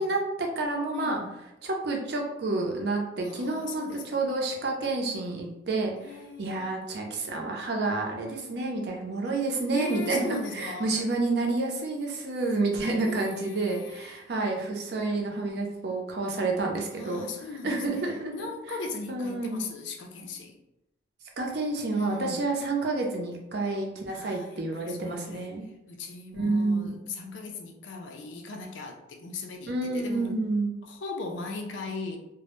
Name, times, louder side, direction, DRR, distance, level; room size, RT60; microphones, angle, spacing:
voice 1, 0.0-1.2 1.6-18.3 19.1-19.6 21.4-25.6 26.3-26.9 29.7-30.7, right 2 dB, 60° right, 1 dB, 0.5 m, -29 dB
voice 2, 0.9-1.3 3.2-4.2 6.0-6.7 9.7-10.9 13.0-14.3 16.9-20.6 21.9-22.5 24.1-25.5 25.9-30.5 30.8-32.2, left 3 dB, 80° left, 3 dB, 0.4 m, -38 dB
2.0 x 2.0 x 3.0 m, 0.90 s
head